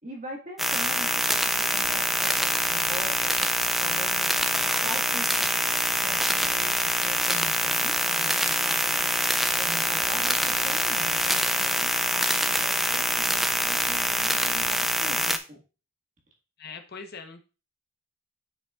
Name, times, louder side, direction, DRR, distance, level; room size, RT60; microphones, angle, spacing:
voice 1, 0.0-3.5 3.8-4.3 4.8-9.1 9.6-15.6, right 1 dB, 35° right, 0 dB, 1.7 m, -42 dB
sound 1, 0.6-15.4, equal, ahead, 0.3 m, -25 dB
voice 2, 16.6-17.4, left 5 dB, 45° left, 6 dB, 1.0 m, -41 dB
8.2 x 6.5 x 2.4 m, 0.33 s
head